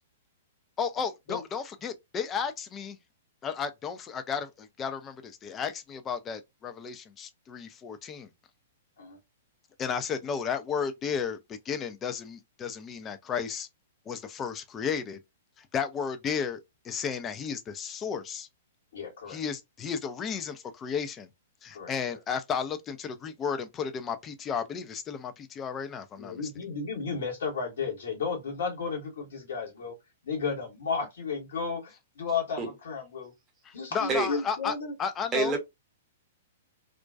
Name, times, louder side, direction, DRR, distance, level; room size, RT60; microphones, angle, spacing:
voice 1, 0.8-3.0 3.4-8.3 9.8-13.7 14.1-15.2 15.6-18.5 19.3-21.3 21.6-26.4 33.6-35.5, left 6 dB, 20° left, 0.4 m, -33 dB
voice 2, 18.9-19.4 21.7-21.9 26.2-30.0 30.2-33.3 33.7-34.9, left 5 dB, 60° left, 1.0 m, -33 dB
voice 3, 32.6-32.7 34.1-34.3 35.3-35.6, right 4 dB, 20° right, 0.8 m, -26 dB
2.4 x 2.2 x 2.3 m
figure-of-eight pair, 110°, 0 cm